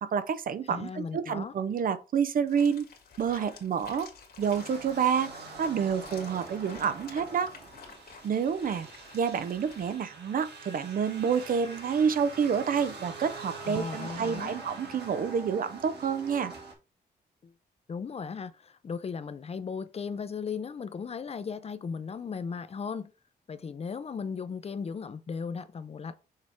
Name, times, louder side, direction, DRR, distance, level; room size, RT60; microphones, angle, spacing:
voice 1, 0.0-2.9 3.2-4.1 4.4-5.3 5.6-7.5 8.2-8.9 9.1-16.5, right 7 dB, 55° right, 0.7 m, -28 dB
voice 2, 0.7-1.5 13.6-14.5 17.4-17.5 17.9-23.1 23.5-26.2, left 5 dB, 35° left, 0.6 m, -36 dB
sound 1, 2.5-10.0, left 5 dB, 65° left, 1.9 m, -50 dB
sound 2, 4.4-16.7, right 3 dB, 75° right, 2.4 m, -44 dB
6.5 x 3.5 x 4.5 m
cardioid pair, 105°, 17 cm